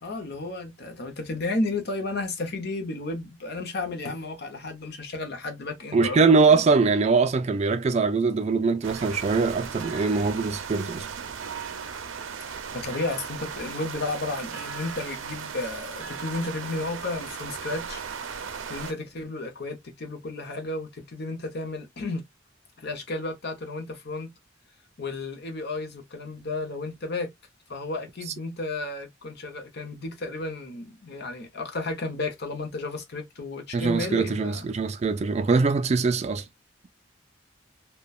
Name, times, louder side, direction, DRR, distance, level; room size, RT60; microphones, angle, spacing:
voice 1, 0.0-6.6 12.4-18.0 18.7-22.2 22.8-24.3 25.0-27.3 27.7-34.7, left 2 dB, 55° left, 0.8 m, -33 dB
voice 2, 5.9-11.1 33.7-36.4, right 4 dB, 35° right, 0.3 m, -22 dB
sound 1, 8.8-18.9, right 6 dB, 85° right, 0.5 m, -37 dB
2.9 x 2.2 x 2.3 m
head